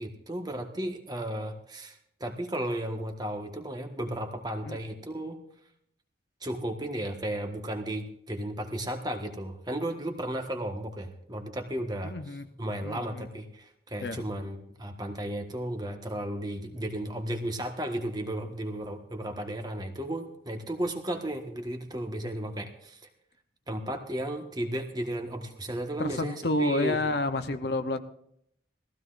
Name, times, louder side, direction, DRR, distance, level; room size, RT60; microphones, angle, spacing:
voice 1, 0.0-5.4 6.4-12.1 12.6-23.1 23.7-27.0, right 1 dB, 20° right, 4 dB, 1.4 m, -34 dB
voice 2, 12.0-12.5 12.8-13.3 14.0-14.3 26.0-28.0, left 2 dB, 55° left, 9 dB, 0.8 m, -30 dB
20.5 x 15.5 x 2.5 m, 0.70 s
head